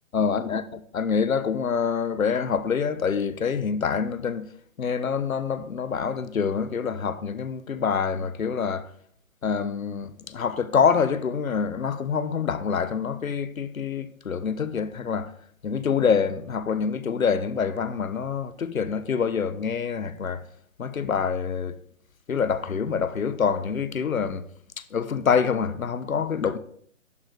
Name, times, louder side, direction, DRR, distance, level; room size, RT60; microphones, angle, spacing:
voice 1, 0.1-0.6 0.9-4.5 4.8-8.9 9.4-15.3 15.6-20.5 20.8-21.8 22.3-24.5 24.8-26.6, left 6 dB, 85° left, 1.2 m, -26 dB
11.0 x 6.5 x 4.9 m
hypercardioid pair, 165°, 40 cm